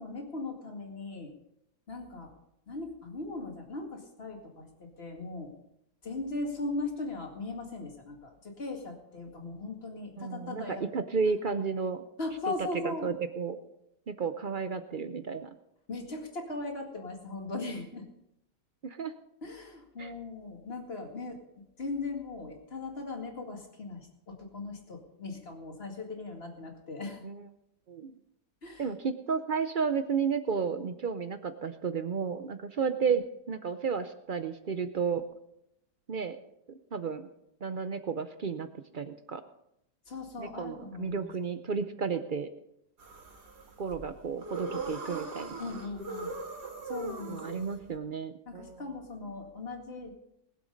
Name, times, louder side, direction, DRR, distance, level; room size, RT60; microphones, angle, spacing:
voice 1, 0.0-1.3 1.9-2.3 2.7-5.5 6.0-10.8 12.2-13.2 15.9-18.1 19.4-21.4 21.8-27.2 28.6-28.9 40.1-41.3 45.6-46.3 46.8-47.7 48.5-50.1, left 3 dB, 35° left, 2 dB, 2.4 m, -39 dB
voice 2, 10.2-12.0 12.8-13.6 14.1-15.5 18.8-19.1 20.0-20.1 27.2-27.5 27.9-28.1 28.8-35.2 36.1-36.4 36.7-37.3 37.6-38.7 38.9-39.4 40.4-42.5 43.8-45.6 47.3-48.8, right 5 dB, 60° right, 10 dB, 0.5 m, -32 dB
sound 1, 43.0-47.9, right 3 dB, 80° right, 2.7 m, -40 dB
20.5 x 7.6 x 5.2 m, 0.81 s
omnidirectional pair, 1.7 m